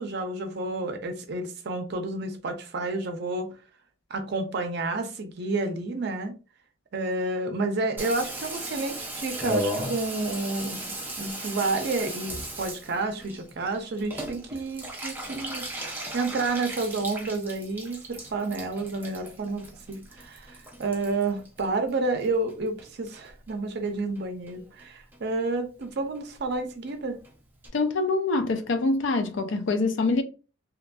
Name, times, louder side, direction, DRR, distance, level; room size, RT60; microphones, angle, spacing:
voice 1, 0.0-3.5 4.1-6.3 6.9-10.8 11.2-15.7 16.1-27.2, right 3 dB, 55° right, 0.5 m, -30 dB
Water tap faucet / Bathtub (filling or washing), 8.0-22.5 22.8-23.5 23.9-24.0 24.2-24.3 24.5-24.9 25.1-25.2 25.5-25.6 25.8-25.9 26.2-26.3 26.5-26.6 26.9-27.0 27.2-27.3 27.6-27.7, right 1 dB, 10° right, 0.5 m, -36 dB
voice 2, 27.7-30.2, left 3 dB, 65° left, 0.4 m, -25 dB
2.8 x 2.5 x 2.2 m
head